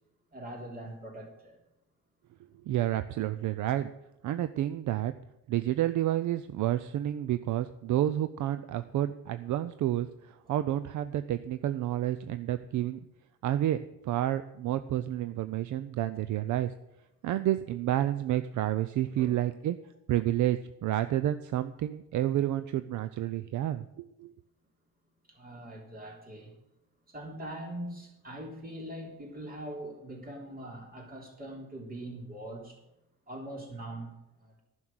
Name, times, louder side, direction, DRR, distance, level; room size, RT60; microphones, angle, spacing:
voice 1, 0.3-1.6 10.4-10.6 19.2-19.3 25.3-26.5 27.1-32.8 33.3-34.6, right 1 dB, 25° right, 0 dB, 3.4 m, -42 dB
voice 2, 2.7-3.9 4.2-5.1 5.5-13.0 13.4-13.8 14.0-16.7 17.2-19.8 20.1-23.8 24.2-24.3, right 13 dB, 65° right, 12 dB, 0.6 m, -30 dB
11.0 x 6.3 x 8.9 m, 0.89 s
cardioid pair, 140°, 33 cm